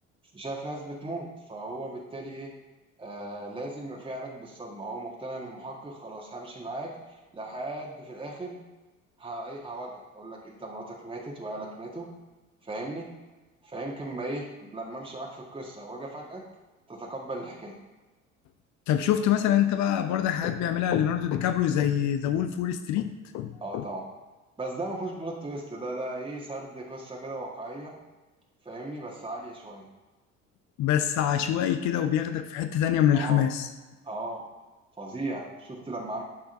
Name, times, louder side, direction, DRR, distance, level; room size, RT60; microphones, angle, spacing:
voice 1, 0.3-2.5 3.0-8.6 9.2-12.1 12.6-13.1 13.6-16.4 16.9-17.8 23.6-24.0 24.6-27.9 28.6-29.9 33.1-33.5 34.0-34.4 35.0-36.2, right 2 dB, 15° right, -3 dB, 1.5 m, -37 dB
voice 2, 18.9-23.1 23.3-23.8 30.8-33.7, left 10 dB, 50° left, 9 dB, 0.7 m, -25 dB
12.0 x 4.5 x 2.6 m, 1.2 s
figure-of-eight pair, 55°, 38 cm